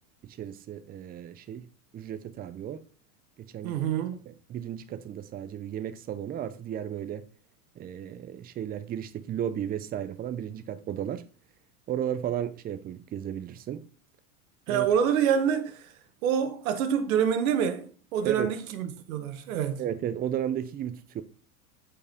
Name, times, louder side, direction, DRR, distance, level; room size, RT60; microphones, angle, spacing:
voice 1, 0.2-1.7 1.9-2.8 3.4-3.8 4.3-7.3 7.8-11.2 11.9-13.9 14.7-14.9 18.2-18.5 19.8-21.2, right 10 dB, 20° right, 0.5 m, -34 dB
voice 2, 3.6-4.2 14.7-15.8 16.2-19.8, right 8 dB, 70° right, 1.3 m, -26 dB
7.9 x 4.9 x 3.6 m
hypercardioid pair, 110°, 43 cm